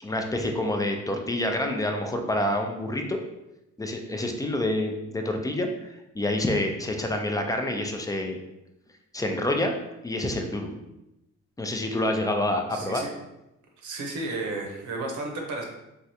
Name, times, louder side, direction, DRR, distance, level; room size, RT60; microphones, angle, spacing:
voice 1, 0.0-3.2 3.8-8.4 9.1-9.8 10.0-10.8 11.6-13.1, left 1 dB, 10° left, 4 dB, 0.3 m, -27 dB
voice 2, 12.7-13.1 13.8-15.6, right 2 dB, 75° right, 1 dB, 0.8 m, -33 dB
3.2 x 2.4 x 2.7 m, 0.92 s
cardioid pair, 90°, 30 cm